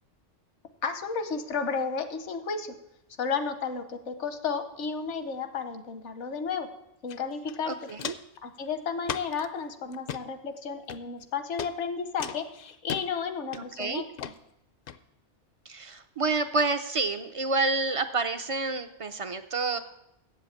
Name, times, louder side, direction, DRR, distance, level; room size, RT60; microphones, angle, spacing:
voice 1, 0.8-2.7 3.2-6.7 7.0-7.8 8.4-14.3, left 5 dB, 75° left, 9 dB, 1.2 m, -32 dB
Walk footsteps, 7.1-7.2 7.5-8.4 9.0-9.5 9.9-10.2 10.9-11.2 11.6-11.7 12.2-13.0 13.5-13.8 14.2-14.3 14.9-15.0, left 8 dB, 60° left, 0.6 m, -36 dB
voice 2, 7.7-8.1 13.5-14.0 15.7-19.8, right 3 dB, 55° right, 9 dB, 0.3 m, -29 dB
7.8 x 7.5 x 8.3 m, 0.83 s
omnidirectional pair, 1.2 m